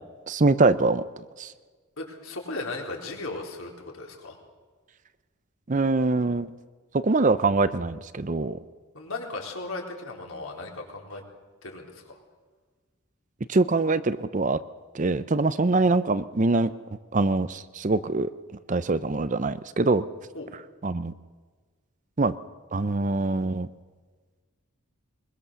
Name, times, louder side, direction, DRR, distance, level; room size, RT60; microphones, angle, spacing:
voice 1, 0.3-1.0 1.4-1.5 5.7-6.5 7.0-8.6 13.5-14.6 14.9-16.7 17.1-18.3 18.7-20.0 20.8-21.1 22.2-22.3 22.7-23.7, right 3 dB, 35° right, 14 dB, 0.6 m, -23 dB
voice 2, 2.0-4.4 8.9-11.2 11.6-12.2 20.3-20.5, left 2 dB, 70° left, 0 dB, 4.0 m, -36 dB
23.0 x 21.5 x 6.9 m, 1.5 s
head